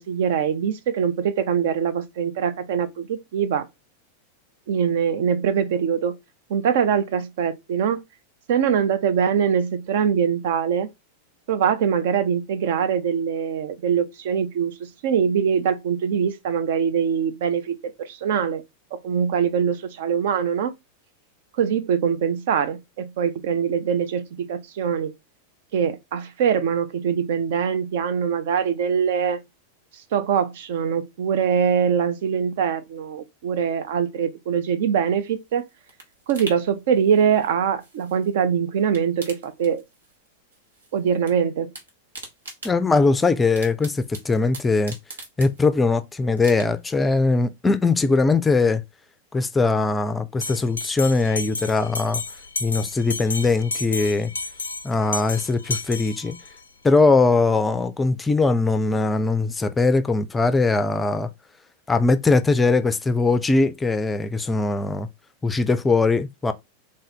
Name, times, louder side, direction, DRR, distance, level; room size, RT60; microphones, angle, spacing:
voice 1, 0.0-3.7 4.7-6.2 6.5-8.0 8.5-10.9 11.5-18.6 18.9-20.7 21.6-25.1 25.7-29.4 30.1-35.7 36.3-39.8 40.9-41.7, right 7 dB, 55° right, 0.5 m, -23 dB
sound 1, 35.2-38.5 38.8-40.3 40.5-41.3 41.6-45.9 46.4-47.0 47.4-47.5, right 2 dB, 75° right, 1.1 m, -42 dB
voice 2, 42.6-45.0 45.4-48.8 49.3-52.2 52.6-54.3 54.8-56.4 56.8-61.3 61.9-65.1 65.4-66.5, left 3 dB, 15° left, 0.4 m, -21 dB
Bell, 50.4-56.6, left 3 dB, 75° left, 0.4 m, -32 dB
3.6 x 2.5 x 4.1 m
figure-of-eight pair, 90°, 0 cm